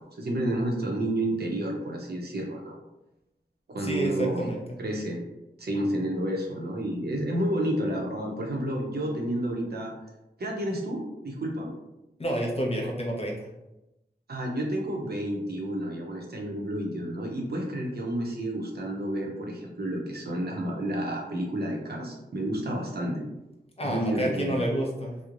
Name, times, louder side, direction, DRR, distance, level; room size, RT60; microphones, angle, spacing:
voice 1, 0.0-2.8 3.7-4.5 4.8-5.2 5.6-9.9 10.4-11.7 14.3-23.2 23.8-24.7, right 1 dB, 70° right, 0 dB, 0.6 m, -30 dB
voice 2, 3.8-4.8 12.2-13.4 23.8-25.1, equal, 35° left, -1 dB, 0.6 m, -29 dB
3.0 x 2.0 x 2.4 m, 0.95 s
wide cardioid pair, 60°, 17 cm